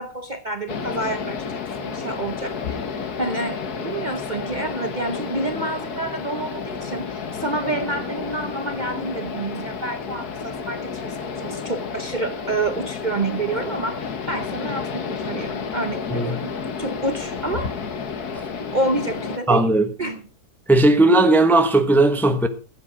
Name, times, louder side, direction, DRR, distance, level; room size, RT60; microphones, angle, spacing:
voice 1, 0.0-1.5 1.8-18.1 18.7-19.7 20.0-20.2, right 2 dB, 35° right, 0.9 m, -28 dB
sound 1, 0.7-19.4, left 5 dB, 90° left, 1.8 m, -31 dB
voice 2, 19.5-19.9 20.7-22.5, right 2 dB, ahead, 0.9 m, -16 dB
15.0 x 8.5 x 5.0 m
omnidirectional pair, 1.6 m